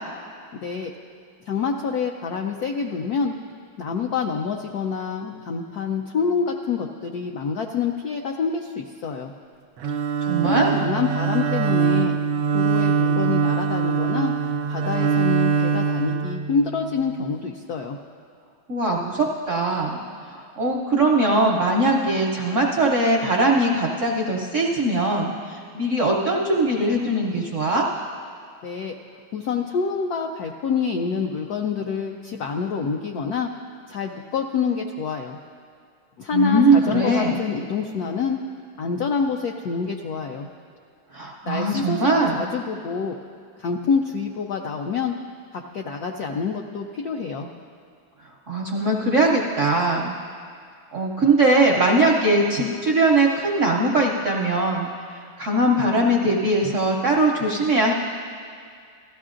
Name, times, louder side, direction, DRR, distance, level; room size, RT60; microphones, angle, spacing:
voice 1, 1.5-3.3 3.8-9.3 10.4-12.2 12.5-14.3 14.7-18.0 28.6-28.9 29.3-33.5 33.9-35.4 36.2-38.4 38.8-40.5 41.4-43.2 43.6-45.1 45.5-47.5, left 5 dB, 80° left, 2 dB, 0.8 m, -27 dB
Bowed string instrument, 9.8-17.0, right 6 dB, 85° right, 1.4 m, -23 dB
voice 2, 10.2-10.8 18.7-27.9 36.3-37.4 41.1-42.5 48.5-50.1 50.9-57.9, right 2 dB, 65° right, -1 dB, 0.7 m, -21 dB
17.0 x 13.5 x 2.5 m, 2.3 s
omnidirectional pair, 2.2 m